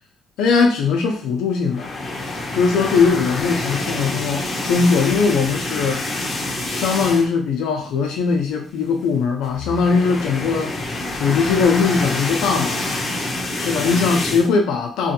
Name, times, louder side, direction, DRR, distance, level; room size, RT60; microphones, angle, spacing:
voice 1, 0.4-1.9 2.5-6.0 6.7-10.9 11.2-12.9 13.6-15.1, left 5 dB, 90° left, 0.6 m, -20 dB
sound 1, 1.7-7.5 7.8-8.0 8.3-8.4 9.4-14.5, left 2 dB, 45° left, 0.8 m, -26 dB
2.6 x 2.5 x 2.8 m
cardioid pair, 80°, 0 cm